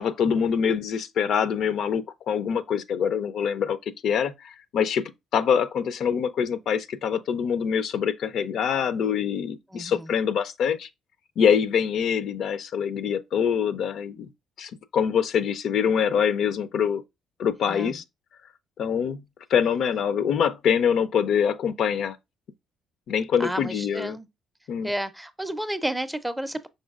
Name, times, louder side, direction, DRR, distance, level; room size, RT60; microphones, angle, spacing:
voice 1, 0.0-3.8 4.0-10.9 11.4-14.3 14.6-17.0 17.4-18.0 18.8-19.2 19.5-22.2 23.1-24.2 24.7-24.9, left 7 dB, 70° left, 0.4 m, -24 dB
voice 2, 9.7-10.1 17.6-18.0 23.4-24.3 24.8-26.7, right 1 dB, 5° right, 0.4 m, -31 dB
5.3 x 3.7 x 2.3 m
cardioid pair, 105°, 0 cm